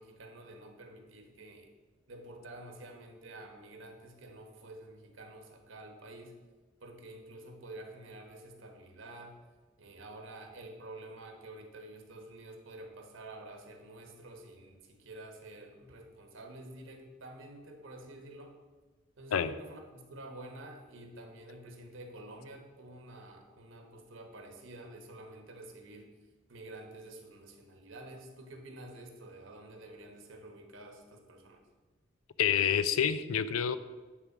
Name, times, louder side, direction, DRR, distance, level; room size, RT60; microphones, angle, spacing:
voice 1, 0.0-1.7 2.1-6.4 6.8-9.4 9.8-18.5 19.2-26.1 26.5-31.6, right 1 dB, 65° right, 3 dB, 1.2 m, -49 dB
voice 2, 32.4-33.8, left 8 dB, 90° left, 13 dB, 0.4 m, -28 dB
9.9 x 3.8 x 5.9 m, 1.3 s
head